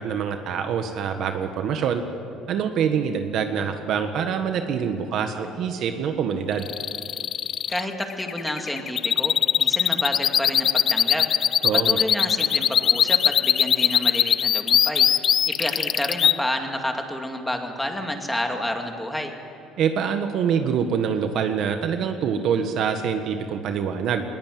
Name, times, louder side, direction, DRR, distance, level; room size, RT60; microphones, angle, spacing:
voice 1, 0.0-2.0 2.5-6.7 11.6-12.0 19.8-24.2, right 7 dB, 55° right, 6 dB, 1.5 m, -25 dB
sound 1, 6.6-16.3, left 9 dB, 40° left, 0.5 m, -20 dB
voice 2, 7.7-11.3 11.9-15.1 15.5-19.3, left 1 dB, 5° left, 3 dB, 2.3 m, -29 dB
21.0 x 20.0 x 9.4 m, 2.6 s
cardioid pair, 140°, 0 cm